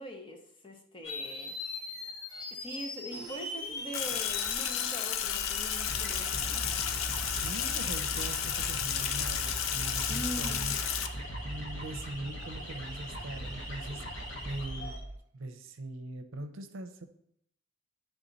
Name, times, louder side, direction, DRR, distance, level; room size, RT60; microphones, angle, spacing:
voice 1, 0.0-2.0 2.5-6.6 10.1-10.8, equal, 25° left, 2 dB, 0.8 m, -43 dB
sound 1, 1.0-15.0, left 1 dB, 65° left, 1.5 m, -41 dB
Sink (filling or washing), 3.9-11.1, left 9 dB, 80° left, 0.5 m, -32 dB
Mechanical fan, 3.9-15.2, right 1 dB, 35° right, 0.8 m, -44 dB
voice 2, 7.3-15.0 15.3-17.1, right 2 dB, 75° right, 8 dB, 0.6 m, -42 dB
10.5 x 3.5 x 4.0 m, 0.72 s
head